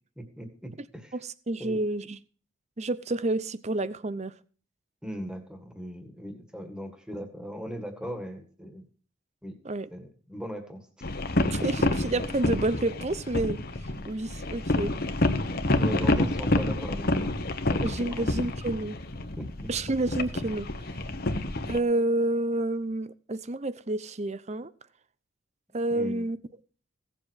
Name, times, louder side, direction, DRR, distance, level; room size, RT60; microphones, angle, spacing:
voice 1, 0.2-1.2 1.6-1.8 5.0-8.8 9.4-9.6 9.9-11.1 15.4-17.4 17.7-18.3 19.4-19.7 25.9-26.3, equal, 5° right, 1.9 m, -39 dB
voice 2, 1.1-2.2 2.8-4.3 9.6-9.9 11.5-13.6 14.1-14.9 17.8-19.0 19.7-20.7 21.7-24.7 25.7-26.4, right 2 dB, 30° right, 0.6 m, -29 dB
sound 1, 11.0-21.8, left 2 dB, 45° left, 1.1 m, -28 dB
16.5 x 7.7 x 6.4 m
head